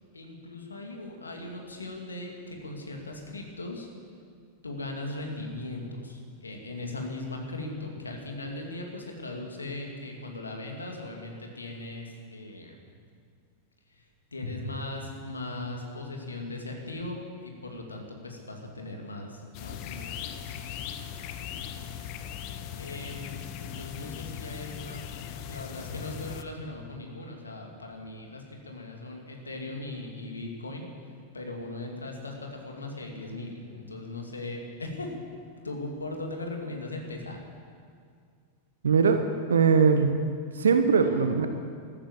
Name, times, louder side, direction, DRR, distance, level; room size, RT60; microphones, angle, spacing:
voice 1, 0.1-3.9 4.6-12.8 13.9-14.1 14.3-21.9 22.7-30.9 31.3-35.1 35.6-37.5 41.0-41.2, left 2 dB, 75° left, 2 dB, 2.6 m, -39 dB
sound 1, 19.5-26.4, left 9 dB, 45° left, 1.0 m, -39 dB
voice 2, 38.8-39.2 39.5-40.2 40.6-41.5, right 5 dB, 70° right, 8 dB, 1.0 m, -21 dB
15.0 x 13.5 x 7.2 m, 2.2 s
figure-of-eight pair, 90°, 0 cm